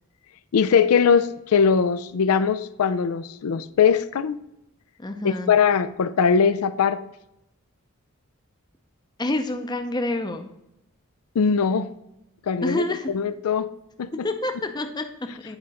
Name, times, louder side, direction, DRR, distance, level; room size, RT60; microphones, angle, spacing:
voice 1, 0.5-4.4 5.2-7.0 11.4-11.9 12.5-12.8 13.1-13.7 14.0-14.1, left 6 dB, 90° left, 0.4 m, -21 dB
voice 2, 5.0-5.5 9.2-10.5 12.6-13.1 14.2-15.6, left 1 dB, 20° left, 0.5 m, -28 dB
8.9 x 4.9 x 4.1 m
head